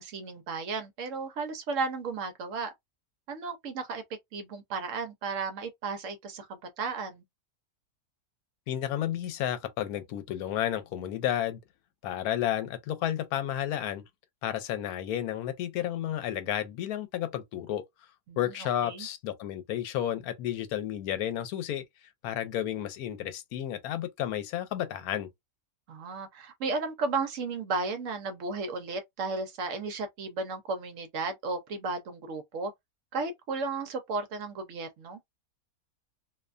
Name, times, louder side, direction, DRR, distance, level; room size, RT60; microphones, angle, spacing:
voice 1, 0.0-2.7 3.3-4.0 4.3-7.2 18.3-18.4 18.8-19.1 25.9-32.7 33.1-35.2, right 4 dB, 65° right, 0.9 m, -34 dB
voice 2, 8.7-11.6 12.0-14.0 14.4-17.8 18.4-21.8 22.2-25.3, left 11 dB, 85° left, 1.1 m, -32 dB
2.6 x 2.1 x 2.4 m
omnidirectional pair, 1.5 m